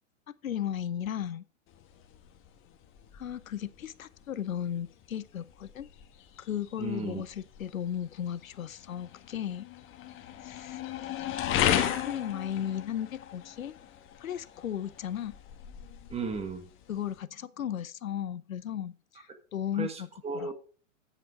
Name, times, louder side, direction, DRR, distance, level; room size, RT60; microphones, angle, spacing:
voice 1, 0.4-1.4 3.1-5.9 6.4-9.7 10.4-10.8 11.5-13.7 14.2-15.4 16.9-19.9 20.3-20.5, left 10 dB, 85° left, 0.7 m, -35 dB
sound 1, 1.7-17.2, left 10 dB, 30° left, 1.5 m, -36 dB
voice 2, 6.8-7.2 16.1-16.7 19.7-20.5, right 4 dB, 15° right, 1.5 m, -35 dB
8.7 x 7.5 x 4.8 m
hypercardioid pair, 115°, 40 cm